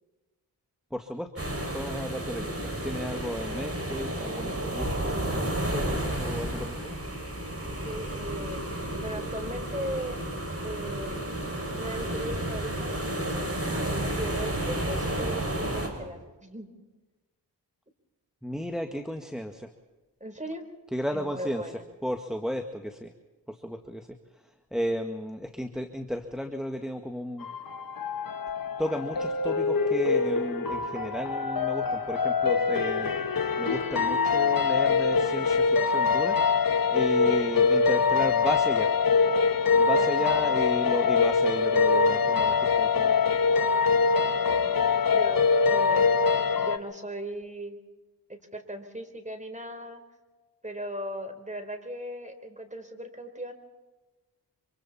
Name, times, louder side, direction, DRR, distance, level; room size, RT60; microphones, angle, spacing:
voice 1, 0.9-1.3 1.7-7.0 18.4-19.7 20.9-21.6 22.0-23.1 23.5-24.1 24.7-27.5 28.8-33.1 33.6-36.4 36.9-38.9 39.8-43.2, equal, ahead, 5 dB, 1.8 m, -34 dB
sound 1, 1.4-15.9, right 1 dB, 35° right, 6.3 m, -32 dB
voice 2, 7.8-8.7 9.0-10.2 10.6-11.2 11.7-13.0 13.6-16.7 20.2-20.6 21.1-21.9 37.2-37.5 39.9-40.2 44.5-44.7 45.1-46.0 46.6-47.8 48.3-50.0 50.6-53.5, right 1 dB, 15° right, 7 dB, 4.3 m, -38 dB
sound 2, 10.8-16.2, right 2 dB, 85° right, 4.1 m, -47 dB
sound 3, 27.4-46.8, left 5 dB, 50° left, 1.4 m, -24 dB
25.5 x 24.5 x 4.3 m, 1.2 s
cardioid pair, 40°, 43 cm